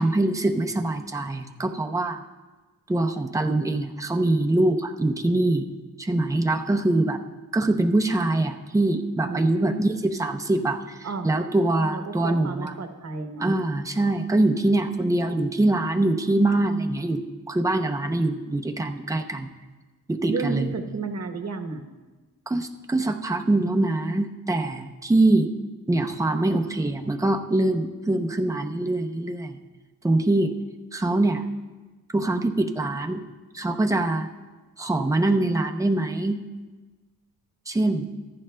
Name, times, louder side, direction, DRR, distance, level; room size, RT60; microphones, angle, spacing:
voice 1, 0.0-2.2 2.9-5.7 6.0-7.2 7.5-12.7 13.4-19.5 20.1-20.7 22.5-25.5 25.9-29.6 30.0-30.5 30.9-31.5 32.1-33.2 33.5-34.3 34.8-36.4 37.7-38.1, right 2 dB, 10° right, 4 dB, 0.6 m, -24 dB
voice 2, 9.2-9.9 11.0-11.3 11.9-13.5 20.3-21.8, right 4 dB, 45° right, 5 dB, 1.1 m, -32 dB
22.5 x 10.5 x 2.2 m, 1.2 s
wide cardioid pair, 155°, 35 cm